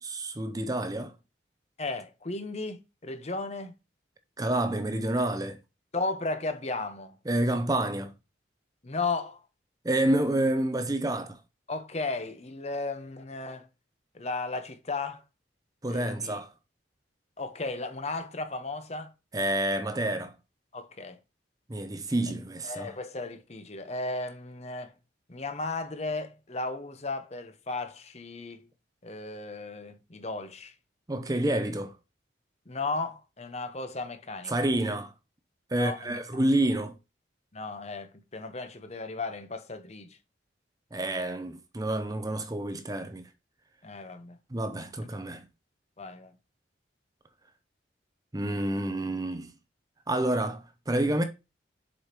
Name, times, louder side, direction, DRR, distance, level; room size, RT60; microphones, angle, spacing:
voice 1, 0.0-1.1 4.4-5.6 7.3-8.1 9.8-11.4 15.8-16.5 19.3-20.3 21.7-22.9 31.1-31.9 34.5-35.1 35.7-36.9 40.9-43.3 44.5-45.4 48.3-49.5 50.1-51.2, right 1 dB, 20° right, 0.6 m, -28 dB
voice 2, 1.8-3.7 5.9-7.2 8.8-9.4 11.7-13.7 14.1-15.2 15.9-16.4 17.4-19.1 20.7-21.2 22.6-24.9 25.3-28.7 29.0-30.7 32.7-34.5 35.7-36.4 37.5-40.2 43.8-44.4 46.0-46.3, left 3 dB, 35° left, 0.9 m, -35 dB
7.3 x 5.0 x 2.9 m
head